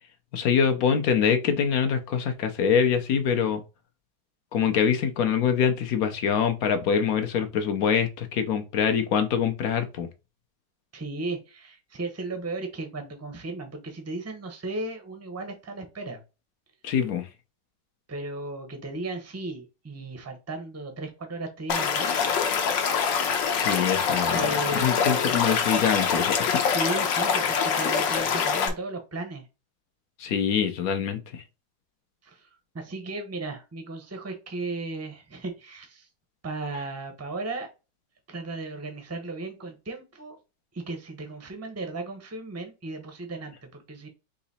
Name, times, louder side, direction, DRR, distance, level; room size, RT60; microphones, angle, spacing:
voice 1, 0.3-3.6 4.5-10.1 16.8-17.3 23.6-24.5 24.8-26.6 30.2-31.2, left 7 dB, 65° left, 1.0 m, -24 dB
voice 2, 10.9-16.2 18.1-22.2 24.3-25.4 26.7-29.5 32.2-32.5 32.7-36.1 36.4-37.7 38.3-40.4 40.7-44.1, right 2 dB, 20° right, 0.4 m, -35 dB
Stream / Liquid, 21.7-28.7, left 6 dB, 90° left, 1.5 m, -25 dB
3.9 x 2.9 x 4.1 m
omnidirectional pair, 1.9 m